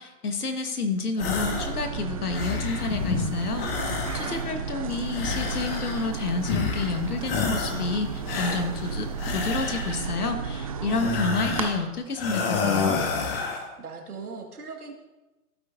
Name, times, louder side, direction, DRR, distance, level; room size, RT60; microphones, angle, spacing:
voice 1, 0.0-13.0, left 3 dB, 80° left, 6 dB, 1.5 m, -30 dB
sound 1, 1.2-1.8 2.1-3.0 3.6-4.6 5.1-6.1 6.4-7.0 7.2-7.9 8.3-10.1 10.9-11.8 12.2-13.7, left 5 dB, 40° left, 1.4 m, -29 dB
sound 2, 1.2-11.7, right 5 dB, 25° right, 0.4 m, -33 dB
sound 3, 2.6-4.4 4.9-9.3, left 4 dB, 60° left, 1.9 m, -37 dB
voice 2, 4.1-5.0 13.4-14.9, right 4 dB, 80° right, 2 dB, 2.0 m, -41 dB
15.5 x 8.1 x 2.6 m, 1.1 s
figure-of-eight pair, 125°, 45 cm